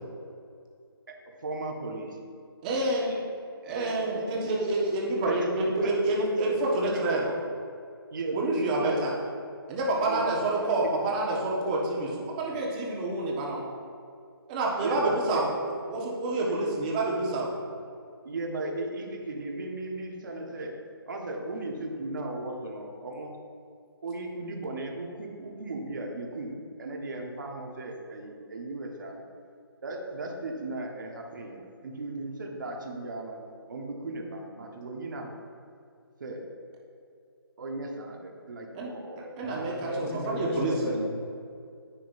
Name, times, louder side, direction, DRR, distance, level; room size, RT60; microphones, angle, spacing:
voice 1, 1.1-2.2 2.7-3.2 3.6-4.3 5.3-5.5 5.8-5.9 6.2-6.4 6.8-7.0 8.1-9.1 10.1-10.5 14.8-15.4 16.5-16.6 18.2-20.7 21.1-23.4 24.0-29.2 29.8-33.4 33.7-35.4 36.2-36.4 37.6-39.4, right 2 dB, 50° right, 0 dB, 1.4 m, -36 dB
voice 2, 2.6-3.1 3.7-7.3 8.3-9.1 9.7-13.6 14.5-15.5 15.9-17.5 38.7-38.9 39.4-41.0, right 2 dB, 20° right, -3 dB, 1.5 m, -28 dB
voice 3, 39.4-41.0, left 1 dB, 10° left, -6 dB, 1.5 m, -33 dB
10.0 x 9.2 x 2.7 m, 2.3 s
figure-of-eight pair, 160°, 13 cm